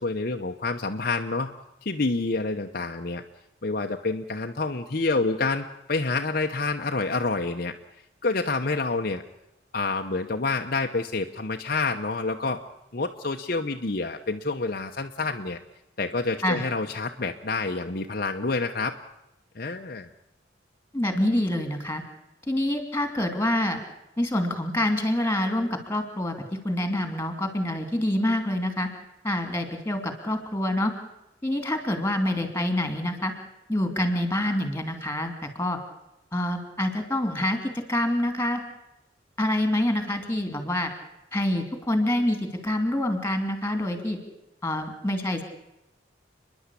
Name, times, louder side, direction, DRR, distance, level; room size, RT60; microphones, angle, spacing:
voice 1, 0.0-1.5 1.8-3.2 3.6-7.8 8.2-9.2 9.7-12.6 12.9-15.6 16.0-19.0 19.5-20.1, left 3 dB, 50° left, 4 dB, 0.9 m, -28 dB
voice 2, 20.9-22.0 22.5-23.8 24.2-26.4 26.6-28.9 29.2-30.9 31.4-33.3 33.7-35.8 36.3-38.6 39.4-40.9 41.3-42.4 42.6-44.2 44.6-45.4, left 1 dB, 10° left, 7 dB, 2.7 m, -26 dB
30.0 x 11.0 x 8.4 m, 0.89 s
head